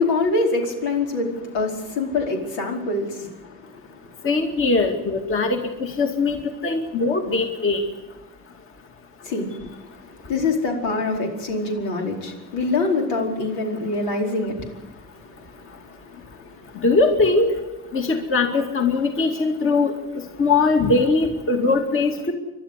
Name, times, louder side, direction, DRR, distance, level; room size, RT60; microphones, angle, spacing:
voice 1, 0.0-4.3 9.2-15.0 15.4-16.0 16.3-16.8, left 3 dB, 85° left, 1 dB, 4.8 m, -25 dB
voice 2, 4.2-6.4 6.6-7.8 16.8-17.5 17.9-19.9 20.4-22.3, left 3 dB, 35° left, 3 dB, 2.4 m, -20 dB
29.5 x 12.5 x 8.3 m, 1.2 s
cardioid pair, 120°, 35 cm